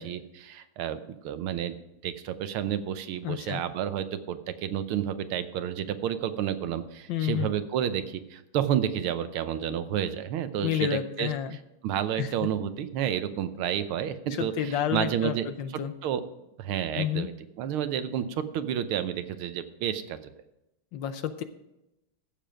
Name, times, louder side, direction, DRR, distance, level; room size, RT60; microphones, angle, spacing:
voice 1, 0.0-1.8 2.0-11.6 11.8-15.5 16.0-16.3 16.6-20.2, right 10 dB, 85° right, 11 dB, 1.7 m, -30 dB
voice 2, 3.2-3.6 7.1-7.5 10.6-11.5 12.2-12.3 14.4-15.9 16.9-17.3 20.9-21.4, left 10 dB, 70° left, 10 dB, 1.3 m, -30 dB
15.0 x 6.9 x 5.1 m, 0.90 s
omnidirectional pair, 2.3 m